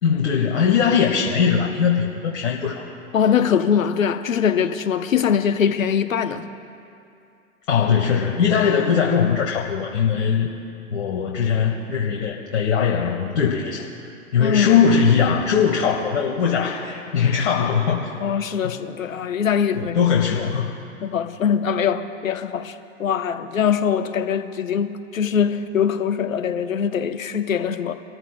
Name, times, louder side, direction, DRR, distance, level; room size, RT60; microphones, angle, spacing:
voice 1, 0.0-2.8 7.7-10.5 10.9-13.9 14.3-18.1 18.6-18.7 19.7-20.7, left 7 dB, 75° left, -2 dB, 1.8 m, -20 dB
voice 2, 3.1-6.5 14.4-14.7 18.2-20.0 20.3-20.5 21.0-27.9, left 7 dB, 90° left, 9 dB, 0.9 m, -22 dB
28.0 x 14.0 x 2.2 m, 2.5 s
hypercardioid pair, 110°, 39 cm